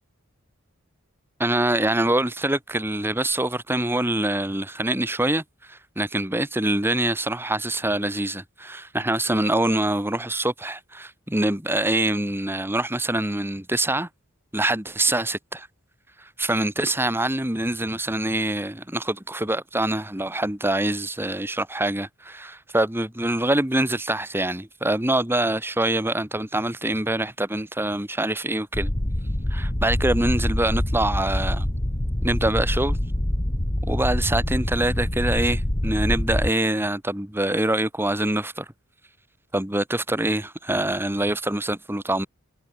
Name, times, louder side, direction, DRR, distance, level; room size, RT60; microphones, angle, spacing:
voice 1, 1.4-5.4 5.7-14.1 14.5-15.7 16.2-28.9 29.5-31.7 32.2-33.0 33.8-38.7 39.5-42.3, right 1 dB, 10° right, 2.1 m, -25 dB
sound 1, 28.7-36.5, left 1 dB, 25° left, 1.6 m, -25 dB
head